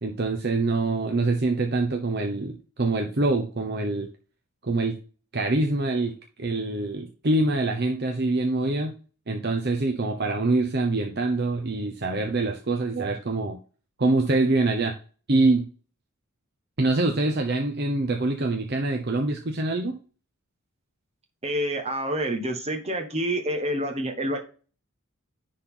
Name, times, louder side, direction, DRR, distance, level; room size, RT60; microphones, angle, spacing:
voice 1, 0.0-4.1 4.6-5.0 5.3-8.9 9.3-13.6 14.0-14.9 15.3-15.7 16.8-20.0, right 2 dB, 45° right, 3 dB, 0.8 m, -25 dB
voice 2, 21.4-24.4, right 1 dB, 30° right, 3 dB, 1.5 m, -28 dB
10.0 x 4.2 x 3.8 m, 0.38 s
head